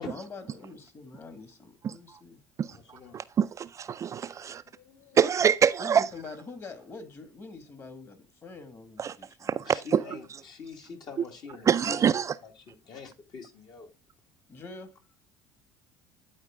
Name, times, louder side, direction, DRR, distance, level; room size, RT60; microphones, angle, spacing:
voice 1, 0.0-2.4 5.8-9.6 14.5-15.0, left 4 dB, 35° left, 2.0 m, -44 dB
voice 2, 1.8-2.2 2.6-4.6 5.2-6.1 9.0-9.2 9.4-10.2 11.7-12.4, right 8 dB, 35° right, 0.4 m, -26 dB
voice 3, 2.7-3.2 4.7-5.2 9.7-12.0 12.4-13.9, left 5 dB, 50° left, 1.9 m, -45 dB
9.8 x 4.3 x 3.6 m
supercardioid pair, 85°, 9 cm